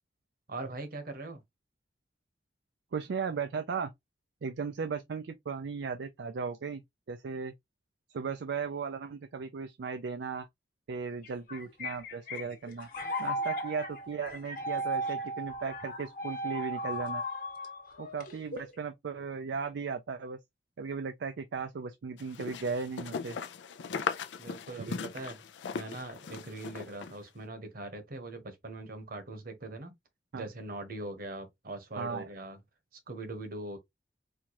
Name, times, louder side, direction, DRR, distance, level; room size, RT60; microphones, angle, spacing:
voice 1, 0.5-1.4 24.4-25.5 25.7-29.9 30.3-32.6 33.1-33.8, right 2 dB, 55° right, 1.1 m, -41 dB
voice 2, 2.9-3.9 4.4-6.8 7.1-7.5 8.1-10.5 10.9-12.9 13.2-17.2 18.0-20.4 20.8-23.4 24.8-25.0 30.3-30.5 32.0-32.3, right 5 dB, 70° right, 0.4 m, -36 dB
sound 1, 11.2-18.8, equal, 50° left, 1.2 m, -36 dB
sound 2, 22.2-27.2, left 6 dB, 85° left, 0.4 m, -38 dB
4.4 x 2.3 x 2.9 m
head